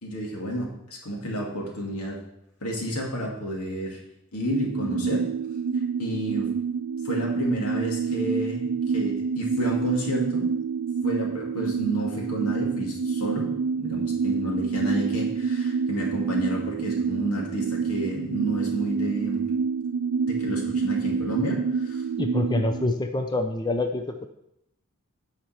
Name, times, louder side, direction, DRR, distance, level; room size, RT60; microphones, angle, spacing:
voice 1, 0.0-2.2 2.6-4.0 4.3-5.2 6.0-6.5 7.0-10.4 11.0-13.5 13.8-19.4 20.2-22.0, equal, 85° left, -1 dB, 2.4 m, -31 dB
sound 1, 4.5-22.9, right 5 dB, 80° right, 0.4 m, -27 dB
voice 2, 22.2-24.3, left 2 dB, 20° left, 6 dB, 0.5 m, -26 dB
9.1 x 5.7 x 5.8 m, 0.80 s
head